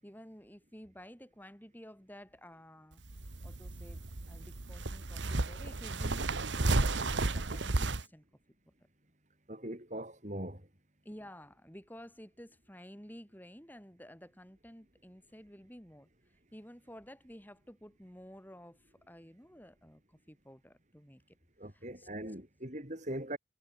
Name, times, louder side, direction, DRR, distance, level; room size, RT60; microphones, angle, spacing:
voice 1, 0.0-3.0 3.4-4.0 4.3-8.2 11.0-16.1 16.5-21.4 21.7-22.1, equal, 10° left, 7.1 m, -52 dB
sound 1, 2.9-8.0, right 2 dB, 80° right, 1.5 m, -33 dB
voice 2, 9.5-10.7 21.6-23.4, right 1 dB, 40° right, 5.7 m, -41 dB
head